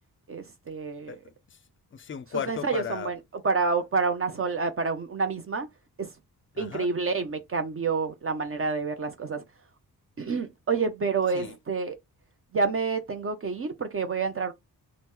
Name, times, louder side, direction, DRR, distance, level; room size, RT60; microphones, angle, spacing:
voice 1, 0.3-1.2 2.5-3.2 3.4-5.7 6.0-6.1 6.6-9.4 10.2-12.0 12.5-14.5, right 4 dB, 35° right, 0.5 m, -28 dB
voice 2, 1.1-1.6 1.9-3.1 6.6-6.9 11.3-11.5, left 8 dB, 35° left, 0.4 m, -36 dB
2.9 x 2.0 x 3.6 m
cardioid pair, 95°, 37 cm